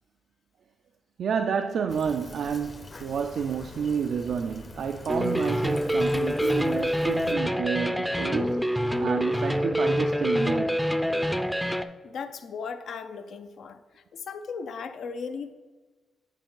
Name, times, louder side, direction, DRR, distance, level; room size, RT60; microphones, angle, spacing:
voice 1, 1.2-10.8, right 6 dB, 75° right, 0.3 m, -30 dB
Fill (with liquid), 1.9-7.3, left 3 dB, 45° left, 0.8 m, -45 dB
sound 1, 5.1-11.8, equal, ahead, 0.4 m, -26 dB
voice 2, 11.6-15.5, left 5 dB, 80° left, 0.5 m, -37 dB
9.0 x 4.5 x 3.8 m
cardioid pair, 65°, 0 cm